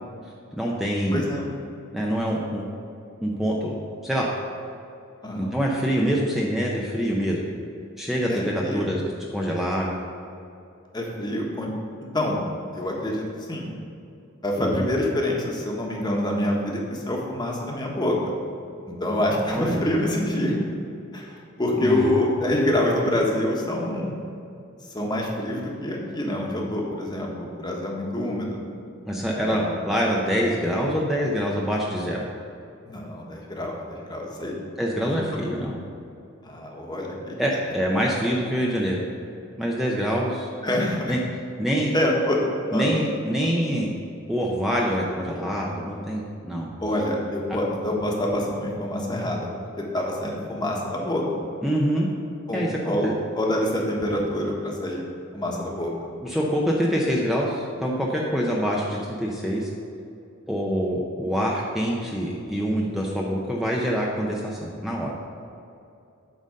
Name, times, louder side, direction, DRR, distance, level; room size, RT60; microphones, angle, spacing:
voice 1, 0.5-1.3 1.9-2.6 3.2-3.7 4.0-4.3 5.3-7.4 8.0-9.0 9.3-10.0 14.6-14.8 19.5-19.8 21.8-22.0 29.1-32.2 34.8-35.8 37.4-39.0 39.6-40.5 41.1-41.2 41.6-41.9 42.7-43.9 44.3-46.7 51.6-52.1 52.5-53.1 56.2-59.7 60.5-65.1, equal, ahead, -3 dB, 0.7 m, -25 dB
voice 2, 1.1-1.5 5.2-5.5 8.3-8.9 10.9-11.7 12.1-12.4 12.7-13.7 14.4-18.3 18.9-20.6 21.1-24.1 24.9-28.6 29.2-29.7 32.8-34.5 35.0-35.3 36.4-37.4 40.6-41.2 41.9-42.4 42.7-42.9 46.8-49.5 49.8-51.2 52.5-52.6 52.9-53.1 53.3-55.0 55.3-55.9, left 1 dB, 20° left, -1 dB, 1.2 m, -26 dB
9.2 x 3.9 x 6.5 m, 2.6 s
head